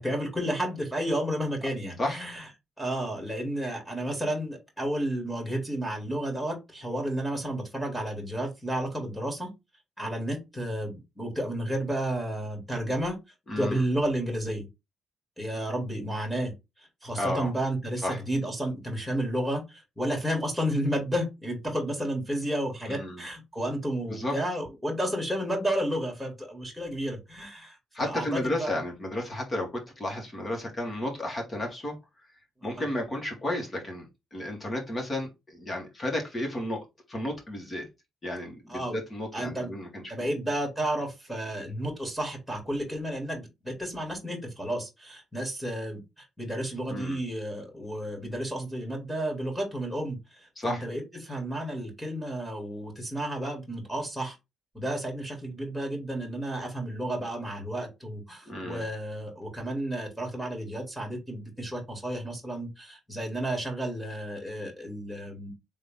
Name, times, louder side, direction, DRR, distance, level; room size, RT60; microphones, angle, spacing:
voice 1, 0.0-2.4 2.8-9.5 10.0-13.2 13.6-14.7 15.4-16.5 17.0-28.8 32.8-32.9 38.7-39.0 39.3-39.7 40.1-54.4 54.7-65.5, right 1 dB, ahead, -1 dB, 2.5 m, -32 dB
voice 2, 13.5-13.8 17.1-17.5 18.0-18.2 22.9-23.2 24.1-24.3 27.9-32.0 32.6-37.9 38.2-40.3 46.9-47.2 50.6-50.8 58.5-58.8, left 1 dB, 30° left, 1 dB, 2.5 m, -33 dB
3.9 x 3.6 x 3.6 m, 0.22 s
cardioid pair, 90°, 0 cm